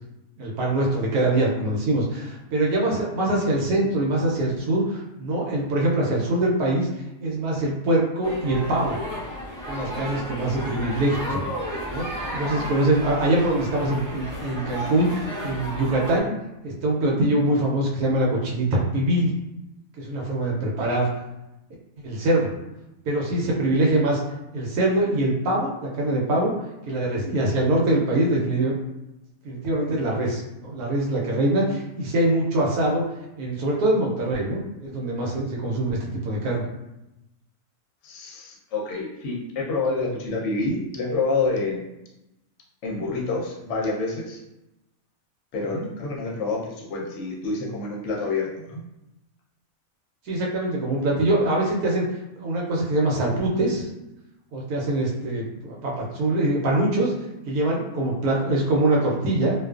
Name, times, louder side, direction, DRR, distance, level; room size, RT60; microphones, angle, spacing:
voice 1, 0.4-6.9 7.2-9.0 9.7-11.4 11.9-16.3 16.6-19.3 20.0-21.1 22.0-22.5 23.1-24.2 24.5-26.5 26.9-28.7 29.4-33.0 33.4-36.7 45.7-45.8 50.3-52.1 52.4-53.9 54.5-57.1 57.5-59.5, right 1 dB, 80° right, -3 dB, 1.1 m, -23 dB
sound 1, 8.2-16.2, equal, 20° left, 0.6 m, -33 dB
voice 2, 38.0-41.8 42.8-44.4 45.5-48.8, left 3 dB, 60° left, -3 dB, 0.8 m, -28 dB
2.4 x 2.3 x 2.3 m, 0.93 s
omnidirectional pair, 1.6 m